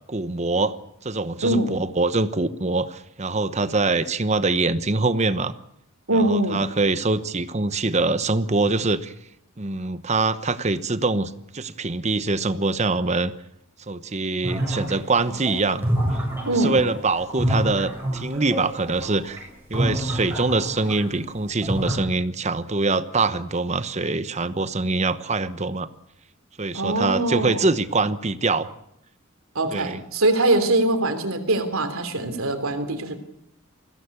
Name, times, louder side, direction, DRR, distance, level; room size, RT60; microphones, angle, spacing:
voice 1, 0.1-0.8 1.0-5.5 6.1-9.1 9.6-13.3 13.9-15.9 16.5-19.4 19.7-25.9 26.6-28.7 29.7-30.0, right 3 dB, 30° right, 13 dB, 1.0 m, -24 dB
voice 2, 6.1-6.6 16.5-16.7 26.7-27.7 29.5-33.2, right 2 dB, 85° right, 8 dB, 3.1 m, -22 dB
sound 1, 14.4-21.2 21.5-21.9, right 1 dB, 10° right, 7.5 m, -27 dB
21.5 x 16.5 x 8.4 m, 0.75 s
head